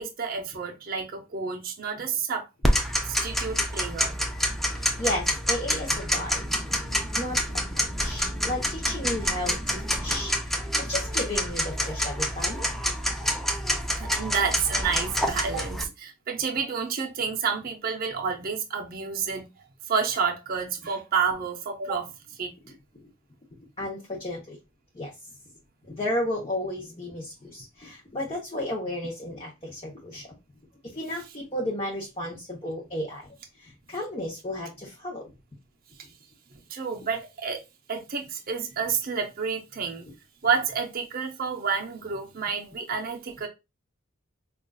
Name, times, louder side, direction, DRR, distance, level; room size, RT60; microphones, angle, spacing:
voice 1, 0.0-2.5 3.1-4.1 13.5-13.7 14.0-19.5 19.9-22.1 22.4-22.5 36.7-37.6 37.9-40.1 40.4-43.5, right 6 dB, 40° right, 0.6 m, -29 dB
Tick-tock, 2.6-15.8, equal, ahead, 0.4 m, -27 dB
voice 2, 4.7-6.5 7.2-7.6 8.0-12.7 23.8-24.6 24.9-25.1 25.9-30.3 30.8-33.3 33.6-35.3, left 1 dB, 25° left, 0.8 m, -33 dB
5.1 x 2.4 x 2.3 m
head